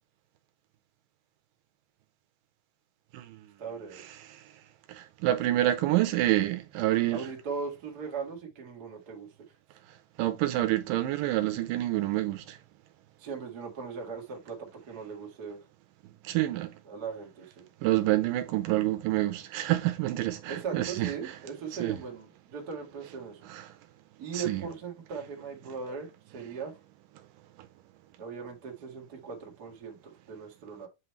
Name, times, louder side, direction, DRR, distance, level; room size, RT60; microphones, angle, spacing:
voice 1, 3.6-4.0 7.1-9.3 13.2-15.6 16.8-17.7 20.5-23.4 24.2-26.7 28.2-30.9, right 6 dB, 45° right, 1.4 m, -39 dB
voice 2, 4.9-7.2 10.2-12.6 16.2-16.7 17.8-21.1 21.8-21.9 24.3-24.6, right 15 dB, 80° right, 2.2 m, -27 dB
7.9 x 3.0 x 4.4 m
omnidirectional pair, 4.0 m